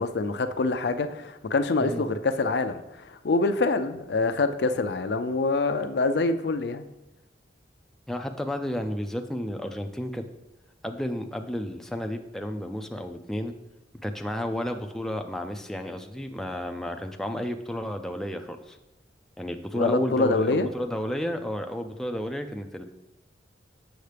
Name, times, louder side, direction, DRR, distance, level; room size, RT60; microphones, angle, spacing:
voice 1, 0.0-6.8 19.7-20.7, left 3 dB, 65° left, 0.5 m, -25 dB
voice 2, 8.1-10.2 10.8-13.5 14.0-18.8 19.4-22.8, equal, ahead, 0.4 m, -32 dB
8.0 x 6.4 x 3.4 m
head